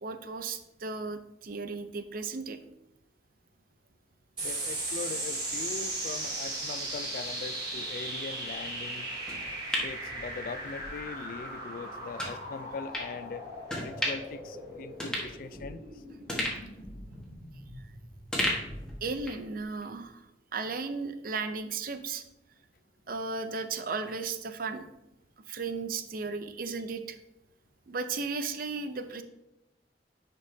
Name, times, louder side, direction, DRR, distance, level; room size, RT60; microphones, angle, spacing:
voice 1, 0.0-2.6 19.0-20.2 20.5-22.2 23.1-24.9 25.5-27.2 27.9-29.2, right 4 dB, 50° right, 9 dB, 0.6 m, -35 dB
voice 2, 4.4-9.1 9.8-13.5 13.8-15.8, left 5 dB, 50° left, 13 dB, 0.3 m, -41 dB
sound 1, 4.4-19.2, right 1 dB, 30° right, 2.7 m, -38 dB
sound 2, 9.3-10.9 11.3-11.4 12.2-12.4 12.9-13.1 13.7-14.4 14.7-14.8 15.0-15.9 16.3-17.9 18.3-19.5 19.8-19.9, left 1 dB, 5° left, 1.4 m, -34 dB
9.9 x 5.3 x 2.7 m, 0.90 s
head